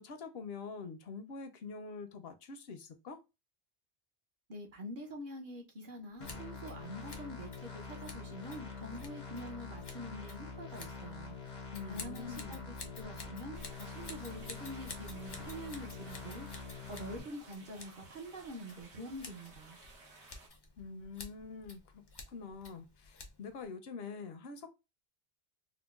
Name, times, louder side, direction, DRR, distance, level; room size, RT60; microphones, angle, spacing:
voice 1, 0.0-3.2 11.7-12.7 20.8-22.0 22.3-24.7, left 4 dB, 70° left, 0.8 m, -45 dB
voice 2, 4.5-11.4 11.8-16.5 16.9-19.8, equal, 55° right, 0.8 m, -46 dB
sound 1, 6.2-17.2, left 4 dB, 90° left, 1.1 m, -46 dB
Scissors, 6.2-23.6, left 3 dB, 40° left, 0.3 m, -53 dB
sound 2, 13.5-20.5, right 2 dB, 90° right, 1.1 m, -56 dB
3.7 x 2.1 x 2.3 m
omnidirectional pair, 1.1 m